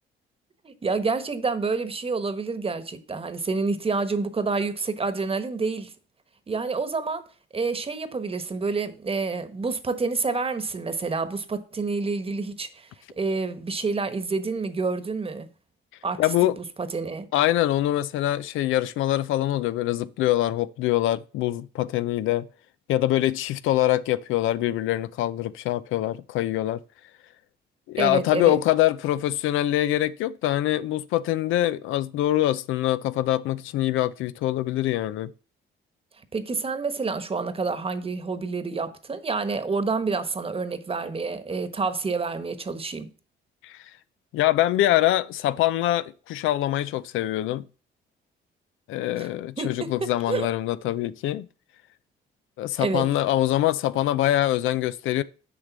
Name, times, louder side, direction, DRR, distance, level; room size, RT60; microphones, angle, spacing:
voice 1, 0.6-5.9 6.5-7.2 7.5-12.9 13.2-15.5 16.0-16.2 16.8-17.3 28.0-28.6 36.3-43.1 49.2-49.3 49.6-50.5 52.8-53.1, right 4 dB, 30° right, 1.2 m, -28 dB
voice 2, 16.2-16.6 17.3-22.5 22.9-26.8 27.9-35.3 43.6-43.8 44.3-47.6 48.9-51.5 52.6-55.2, left 14 dB, 90° left, 0.5 m, -24 dB
7.0 x 5.2 x 7.3 m
cardioid pair, 90°, 20 cm